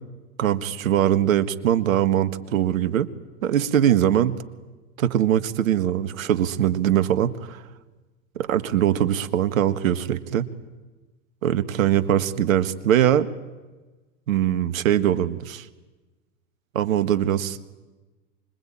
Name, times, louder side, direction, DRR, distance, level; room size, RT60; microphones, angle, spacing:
voice 1, 0.4-3.1 3.4-4.3 5.0-7.6 8.4-10.5 11.4-13.3 14.3-15.7 16.7-17.6, right 10 dB, 75° right, 11 dB, 1.7 m, -22 dB
25.5 x 22.0 x 8.8 m, 1.2 s
hypercardioid pair, 105°, 40 cm